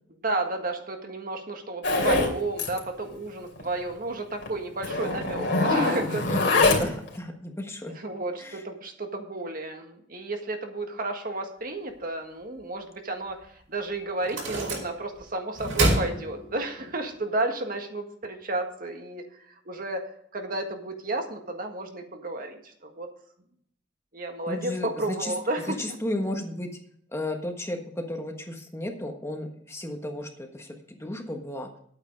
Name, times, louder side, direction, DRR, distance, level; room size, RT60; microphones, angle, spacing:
voice 1, 0.2-6.5 7.9-23.1 24.1-25.8, right 2 dB, 45° right, 4 dB, 1.6 m, -32 dB
Zipper (clothing), 1.8-2.3 2.6-2.8 3.1-3.2 3.6-3.7 4.4-4.5 4.8-7.1, left 2 dB, 60° left, 2.8 m, -23 dB
voice 2, 6.2-7.9 8.4-8.6 24.5-26.7 27.1-31.7, left 1 dB, 15° left, 3 dB, 1.3 m, -34 dB
sound 1, 13.4-13.5 14.2-15.2 15.6-16.9, right 1 dB, 80° right, 4.9 m, -27 dB
10.5 x 8.9 x 5.2 m, 0.66 s
head